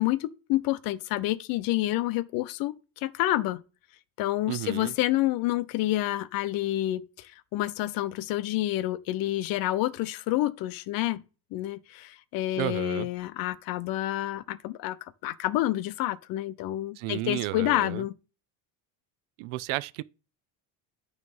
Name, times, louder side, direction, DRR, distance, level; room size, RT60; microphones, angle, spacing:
voice 1, 0.0-3.6 4.2-11.2 11.5-18.1, left 15 dB, 50° left, 0.6 m, -28 dB
voice 2, 4.5-4.9 12.6-13.1 17.0-18.0 19.4-20.0, right 17 dB, 85° right, 0.6 m, -32 dB
9.3 x 3.2 x 5.4 m
cardioid pair, 165°, 44 cm